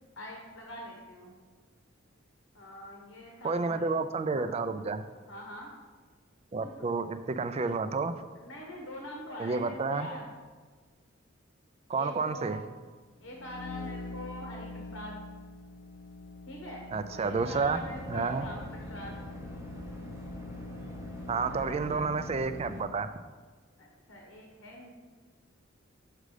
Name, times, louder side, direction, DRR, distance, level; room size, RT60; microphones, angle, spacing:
voice 1, 0.2-1.4 2.5-3.9 4.3-4.4 5.1-5.7 6.6-6.9 8.4-10.3 11.9-12.7 13.2-15.2 16.5-16.8 17.1-19.2 21.4-22.0 23.8-24.9, equal, 80° left, -1 dB, 1.1 m, -44 dB
voice 2, 3.4-5.0 6.5-8.1 9.4-10.1 11.9-12.6 16.9-17.8 18.1-18.4 21.3-23.1, right 4 dB, 30° right, 11 dB, 0.4 m, -30 dB
sound 1, 13.2-23.1, left 2 dB, 45° left, 0.4 m, -45 dB
sound 2, 17.3-22.8, equal, 15° right, 0.8 m, -45 dB
6.6 x 5.1 x 4.9 m, 1.5 s
head